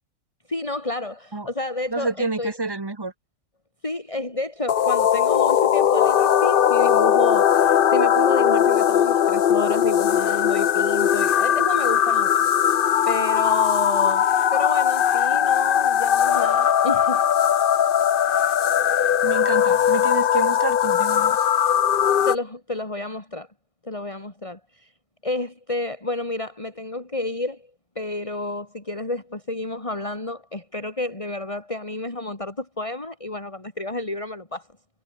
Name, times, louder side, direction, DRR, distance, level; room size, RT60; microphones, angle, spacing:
voice 1, 0.5-2.5 3.8-12.3 13.1-17.3 22.2-23.5 23.8-24.9 25.2-27.7 27.9-34.7, left 2 dB, 20° left, 3.2 m, -30 dB
voice 2, 1.9-3.1 19.2-21.4, right 3 dB, 20° right, 1.2 m, -28 dB
sound 1, 4.7-22.3, left 9 dB, 50° left, 0.7 m, -19 dB
omnidirectional pair, 1.5 m